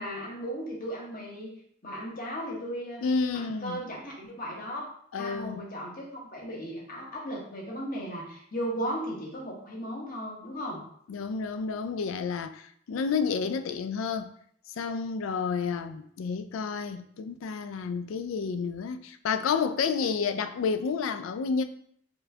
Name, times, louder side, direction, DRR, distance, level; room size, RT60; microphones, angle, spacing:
voice 1, 0.0-1.5 1.8-3.0 3.3-4.9 5.1-10.8, equal, 45° left, 1.1 m, -36 dB
voice 2, 3.0-3.8 5.1-5.6 11.1-14.3 14.8-21.6, left 5 dB, 80° left, 0.4 m, -30 dB
4.4 x 3.3 x 2.7 m
head